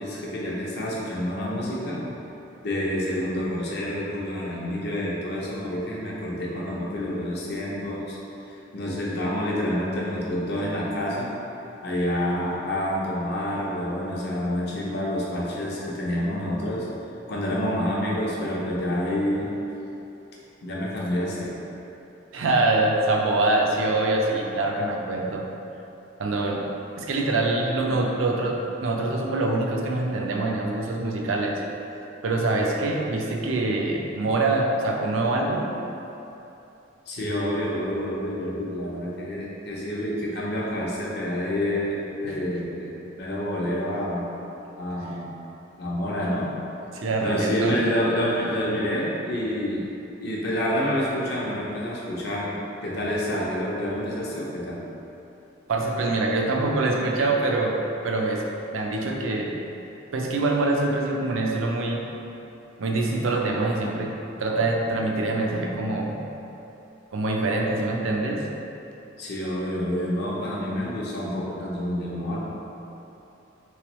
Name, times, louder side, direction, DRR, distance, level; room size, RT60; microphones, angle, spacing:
voice 1, 0.0-2.0 2.6-8.2 8.5-11.3 11.8-16.9 17.3-19.5 20.6-21.5 37.1-42.9 43.2-44.3 44.8-45.3 45.8-46.5 47.2-49.9 50.2-54.8 69.2-72.4, equal, 55° left, -5 dB, 0.7 m, -28 dB
voice 2, 22.3-25.5 26.2-26.7 27.0-31.6 32.2-35.7 42.2-42.4 46.9-47.8 55.7-59.6 60.1-62.1 62.8-66.2 67.1-68.5, right 2 dB, 80° right, 0 dB, 0.5 m, -25 dB
3.3 x 3.1 x 3.0 m, 2.9 s
head